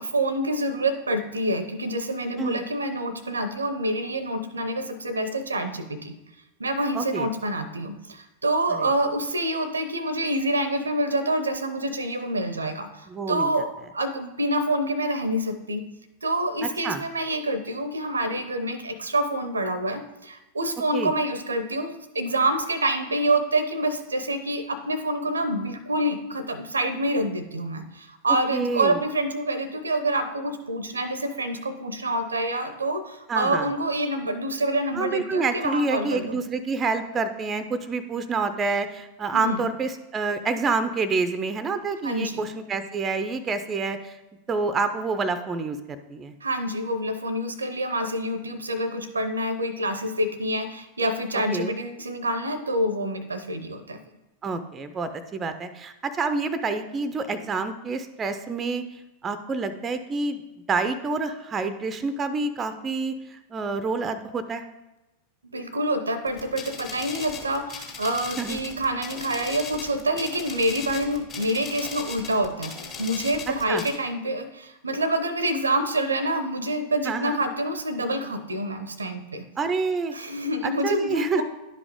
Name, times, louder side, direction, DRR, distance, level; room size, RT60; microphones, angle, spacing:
voice 1, 0.0-6.1 6.6-15.8 16.2-36.4 39.3-39.7 42.0-42.5 46.4-54.0 65.4-72.7 73.0-79.4 80.1-81.4, right 1 dB, 75° right, 11 dB, 0.6 m, -27 dB
voice 2, 6.9-7.3 8.7-8.9 13.1-13.5 16.8-17.0 20.9-21.1 28.5-29.0 33.3-33.7 34.9-44.2 44.5-46.3 51.5-51.7 54.4-58.9 59.2-60.4 60.7-64.6 68.4-68.6 73.5-73.8 77.0-77.4 79.6-80.2 80.6-81.4, right 4 dB, 20° right, 11 dB, 0.5 m, -28 dB
sound 1, 66.3-74.0, left 5 dB, 30° left, 1.8 m, -38 dB
11.0 x 5.0 x 3.6 m, 0.97 s
figure-of-eight pair, 90°, 0 cm